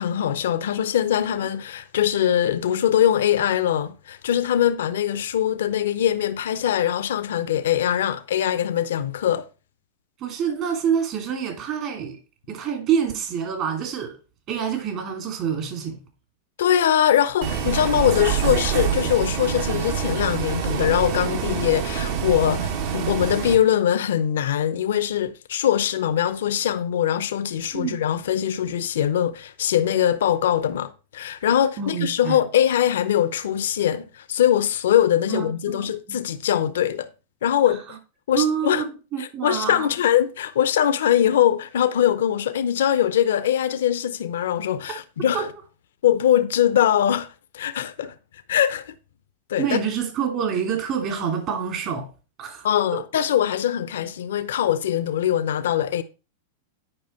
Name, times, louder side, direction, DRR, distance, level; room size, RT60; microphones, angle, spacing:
voice 1, 0.0-9.4 16.6-37.1 37.4-37.8 38.3-38.8 39.2-45.5 46.0-47.3 47.5-48.1 48.5-48.9 49.5-49.8 52.6-56.0, left 10 dB, 75° left, 0.7 m, -22 dB
voice 2, 10.2-12.2 12.5-14.2 14.5-16.0 27.7-28.0 31.8-32.4 35.3-36.2 38.4-40.0 45.3-45.5 49.6-52.1 52.4-52.7, right 7 dB, 45° right, 2.7 m, -27 dB
Bus, 17.4-23.5, right 7 dB, 60° right, 1.9 m, -26 dB
9.9 x 5.0 x 4.3 m
hypercardioid pair, 110°, 0 cm